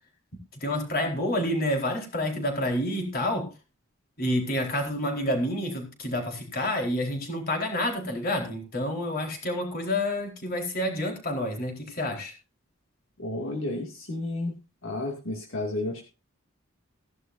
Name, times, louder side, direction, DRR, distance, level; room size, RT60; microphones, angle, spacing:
voice 1, 0.5-3.5 4.2-12.3, left 1 dB, 50° left, 2 dB, 4.3 m, -28 dB
voice 2, 13.2-14.5 14.8-16.0, left 2 dB, 75° left, 0 dB, 2.4 m, -31 dB
17.0 x 11.0 x 2.7 m, 0.31 s
head